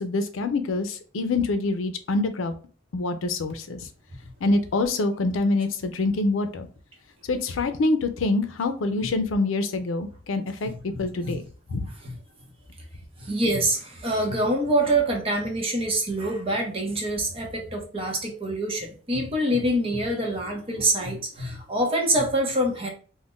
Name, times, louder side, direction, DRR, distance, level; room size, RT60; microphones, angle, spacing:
voice 1, 0.0-2.5 2.9-3.8 4.4-6.7 7.3-10.7 11.0-11.4 11.7-11.9, left 2 dB, 85° left, 8 dB, 0.5 m, -25 dB
voice 2, 10.6-11.4 12.0-12.2 13.2-22.9, right 1 dB, 30° right, 1 dB, 0.7 m, -26 dB
2.5 x 2.1 x 3.6 m, 0.40 s
head